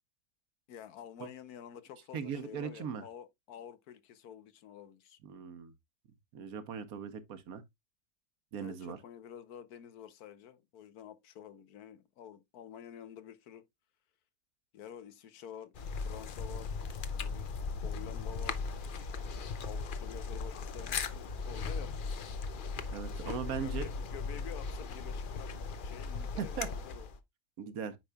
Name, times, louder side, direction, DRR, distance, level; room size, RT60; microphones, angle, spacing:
voice 1, 0.7-5.2 8.6-13.6 14.7-18.8 19.6-21.9 23.2-25.5 25.8-27.1, left 9 dB, 75° left, 1.2 m, -49 dB
voice 2, 2.1-3.0 5.2-5.7 6.3-7.6 8.5-9.0 22.9-23.9 26.4-26.7 27.6-28.0, right 7 dB, 70° right, 1.3 m, -39 dB
sound 1, 15.7-27.2, left 4 dB, 60° left, 0.5 m, -38 dB
8.9 x 5.2 x 2.2 m
omnidirectional pair, 1.6 m